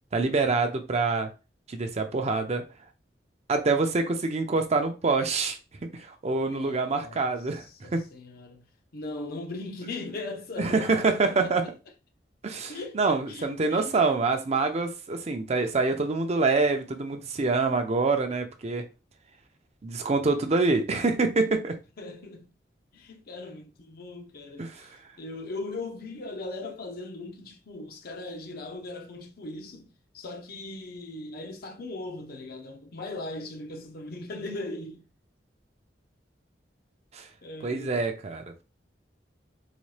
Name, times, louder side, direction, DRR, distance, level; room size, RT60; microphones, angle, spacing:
voice 1, 0.1-1.3 1.7-2.6 3.5-5.6 5.9-8.0 10.6-11.6 12.4-18.8 19.8-21.8 24.6-24.9 37.1-37.3 37.6-38.6, right 3 dB, 35° right, 0.5 m, -26 dB
voice 2, 6.4-7.3 7.6-8.6 8.9-11.5 12.7-14.0 22.0-22.5 22.9-24.9 25.2-35.1 37.4-38.1, left 2 dB, 55° left, 0.6 m, -39 dB
4.0 x 2.2 x 3.2 m
head